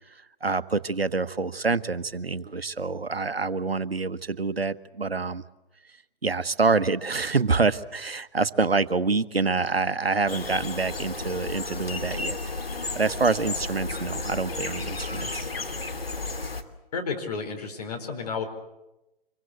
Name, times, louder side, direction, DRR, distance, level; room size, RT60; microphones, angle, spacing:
voice 1, 0.4-5.4 6.2-12.4 12.9-15.5, right 4 dB, 80° right, 13 dB, 1.2 m, -26 dB
sound 1, 10.3-16.6, left 3 dB, 75° left, 2.9 m, -33 dB
voice 2, 16.9-18.4, left 5 dB, 40° left, 4 dB, 4.5 m, -31 dB
26.0 x 23.0 x 8.2 m, 0.93 s
figure-of-eight pair, 140°, 30 cm